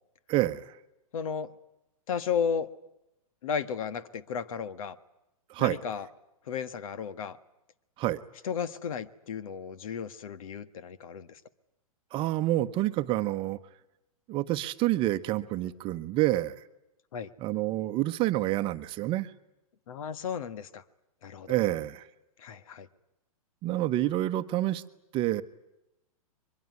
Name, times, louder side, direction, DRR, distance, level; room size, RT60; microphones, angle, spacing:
voice 1, 0.3-0.7 5.5-5.8 8.0-8.2 12.1-13.6 14.3-16.6 17.4-19.3 21.5-22.0 23.6-24.8 25.1-25.4, right 15 dB, 25° right, 10 dB, 1.0 m, -28 dB
voice 2, 1.1-1.5 2.1-2.7 3.4-5.0 5.6-6.1 6.5-7.4 8.4-11.4 17.1-17.3 19.9-20.8 21.2-21.5 22.4-22.9, left 7 dB, 65° left, 15 dB, 1.6 m, -34 dB
23.5 x 22.0 x 9.5 m, 0.88 s
hypercardioid pair, 135°, 19 cm